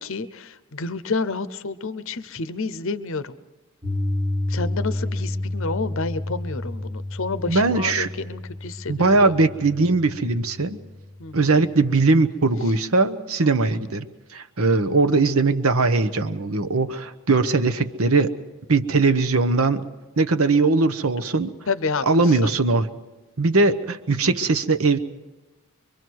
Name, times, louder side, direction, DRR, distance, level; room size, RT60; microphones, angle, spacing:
voice 1, 0.0-3.4 4.5-9.3 11.2-11.6 13.4-13.5 21.7-22.1, left 4 dB, 60° left, 14 dB, 0.8 m, -29 dB
Piano, 3.8-11.9, left 1 dB, 20° right, 1.4 m, -30 dB
voice 2, 7.4-8.1 8.9-10.8 11.3-14.1 14.3-18.3 18.7-19.9 20.2-21.5 22.1-22.9 23.4-25.0, right 3 dB, 70° right, 10 dB, 1.0 m, -20 dB
24.5 x 24.0 x 4.7 m, 1.1 s
head